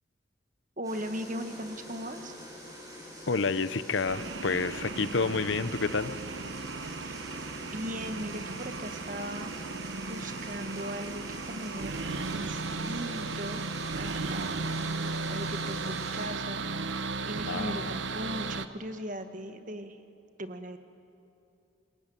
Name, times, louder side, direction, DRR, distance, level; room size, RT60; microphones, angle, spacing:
sound 1, 0.8-16.3, equal, 20° right, 6.5 m, -45 dB
voice 1, 0.8-2.3 7.0-7.2 7.6-9.6 10.1-12.0 12.3-13.6 13.9-14.6 14.9-20.0 20.4-20.8, equal, 45° right, 8 dB, 1.5 m, -39 dB
voice 2, 3.3-6.1 17.5-17.8, left 4 dB, 80° left, 14 dB, 0.8 m, -29 dB
sound 2, 4.0-18.7, right 3 dB, 80° right, 1.0 m, -36 dB
27.5 x 21.5 x 9.2 m, 2.7 s
head